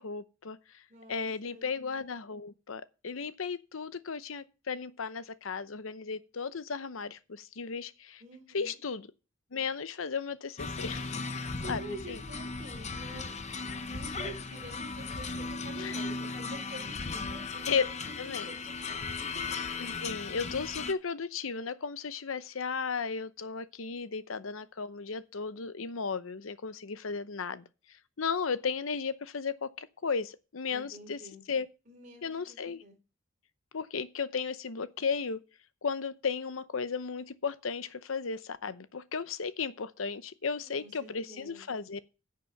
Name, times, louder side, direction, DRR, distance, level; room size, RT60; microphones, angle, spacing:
voice 1, 0.0-0.8 1.1-8.2 8.5-9.1 9.5-11.1 11.7-12.2 15.8-16.0 17.7-17.8 18.2-18.5 19.8-27.6 28.2-31.2 31.5-31.7 32.2-32.8 33.7-35.4 35.8-42.0, left 5 dB, 90° left, 0.8 m, -35 dB
voice 2, 0.9-1.7 8.2-8.8 11.6-13.5 13.9-19.5 30.7-31.4 31.9-33.0 40.6-41.9, right 1 dB, 40° right, 3.3 m, -48 dB
sound 1, 10.6-20.9, left 4 dB, 35° left, 0.7 m, -37 dB
10.5 x 6.8 x 5.8 m
head